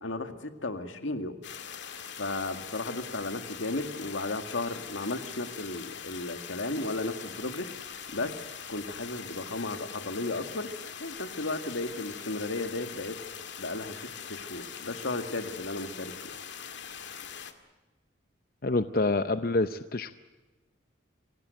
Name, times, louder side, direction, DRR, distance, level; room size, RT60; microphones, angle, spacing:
voice 1, 0.0-1.4 2.2-8.4 8.7-10.7 11.0-13.2 13.6-14.0 14.3-16.3, left 2 dB, 85° left, 8 dB, 2.1 m, -34 dB
sound 1, 1.4-17.5, left 7 dB, 70° left, 2.0 m, -42 dB
voice 2, 18.6-20.1, left 2 dB, 50° left, 11 dB, 0.7 m, -27 dB
26.5 x 17.0 x 8.0 m, 1.2 s
head